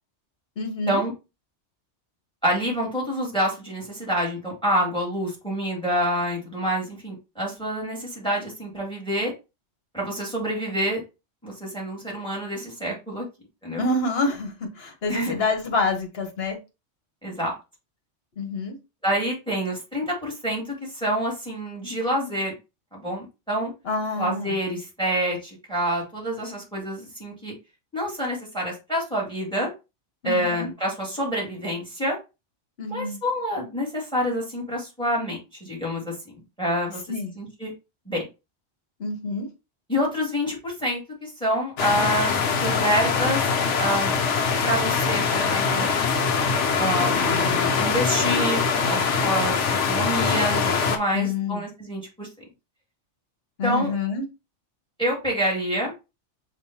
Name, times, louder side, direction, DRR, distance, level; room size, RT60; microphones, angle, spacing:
voice 1, 0.6-1.0 13.8-16.6 18.4-18.8 23.8-24.6 30.2-30.7 32.8-33.2 37.1-37.3 39.0-39.5 51.1-51.6 53.6-54.2, left 3 dB, 55° left, 1.4 m, -27 dB
voice 2, 2.4-9.3 9.9-11.0 11.4-13.2 13.6-13.8 15.1-15.4 17.2-17.5 19.0-22.5 22.9-23.7 24.2-27.5 27.9-29.7 30.2-32.2 32.9-37.0 37.4-37.7 38.1-38.2 39.9-43.5 43.8-44.1 44.6-45.9 46.8-48.6 48.9-49.6 49.9-52.3 53.6-53.9 55.0-55.9, equal, 5° left, 2.0 m, -27 dB
sound 1, 41.8-51.0, left 5 dB, 75° left, 1.0 m, -23 dB
6.8 x 2.6 x 2.8 m
omnidirectional pair, 1.2 m